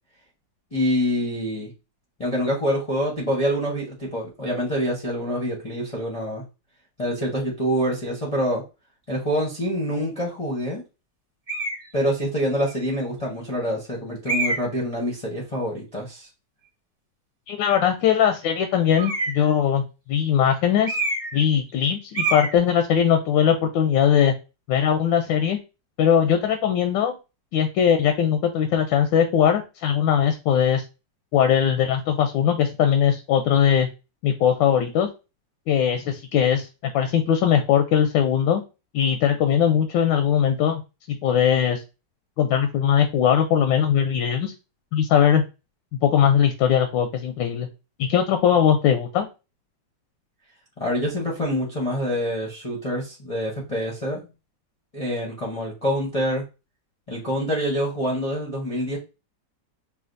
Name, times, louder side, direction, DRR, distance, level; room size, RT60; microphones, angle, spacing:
voice 1, 0.7-1.7 2.2-6.4 7.0-8.6 9.1-10.8 11.9-16.3 50.8-54.3 54.9-56.4 57.1-59.0, equal, 35° left, -4 dB, 0.6 m, -26 dB
sound 1, 11.5-11.9 12.7-12.8 14.3-14.8 18.9-19.5 20.8-21.4 21.7-21.9 22.1-22.6, right 2 dB, 25° right, 1.0 m, -26 dB
voice 2, 17.5-19.8 20.1-21.0 21.3-24.3 24.7-25.6 26.0-27.2 27.5-30.8 31.3-33.9 34.2-35.1 35.7-36.7 36.9-38.6 38.9-40.8 41.1-41.8 42.4-44.5 44.9-45.4 46.0-47.7 48.0-49.3, left 8 dB, 90° left, 7 dB, 1.3 m, -20 dB
5.7 x 2.6 x 2.5 m, 0.29 s
omnidirectional pair, 2.0 m